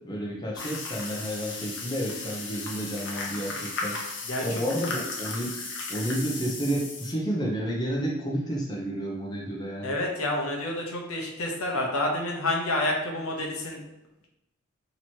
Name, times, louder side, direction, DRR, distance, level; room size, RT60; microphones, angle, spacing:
voice 1, 0.0-4.0 4.4-5.5 5.9-9.9, equal, 20° left, -4 dB, 0.7 m, -31 dB
sound 1, 0.6-7.1, left 3 dB, 55° left, 0.8 m, -35 dB
voice 2, 9.8-13.8, left 1 dB, 85° left, 0 dB, 0.8 m, -28 dB
3.0 x 3.0 x 4.3 m, 0.91 s
head